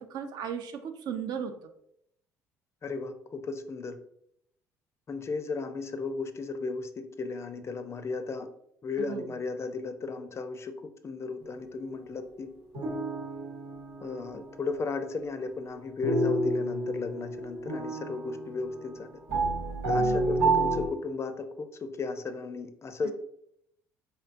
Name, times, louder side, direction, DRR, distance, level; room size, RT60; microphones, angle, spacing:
voice 1, 0.0-1.6 9.1-9.3 20.0-20.4 23.0-23.1, right 7 dB, 55° right, 7 dB, 0.4 m, -36 dB
voice 2, 2.8-4.0 5.1-8.5 8.8-12.5 14.0-19.1 19.9-23.1, left 4 dB, 35° left, 9 dB, 0.4 m, -35 dB
sound 1, 11.4-11.8 12.7-14.8 16.0-20.9, right 2 dB, 80° right, 1.0 m, -30 dB
3.2 x 2.7 x 2.5 m, 0.73 s
hypercardioid pair, 60°, 8 cm